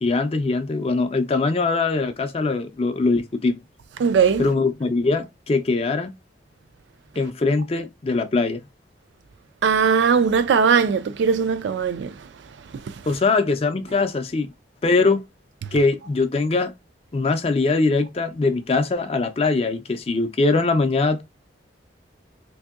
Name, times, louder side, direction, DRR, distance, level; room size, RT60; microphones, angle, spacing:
voice 1, 0.0-3.6 4.4-6.1 7.2-8.6 13.1-14.5 14.8-15.2 15.7-16.7 17.1-21.2, left 3 dB, 30° left, 0.4 m, -22 dB
voice 2, 4.0-4.5 9.6-12.3 12.7-13.0, right 6 dB, 70° right, 0.3 m, -20 dB
3.4 x 2.7 x 2.3 m
head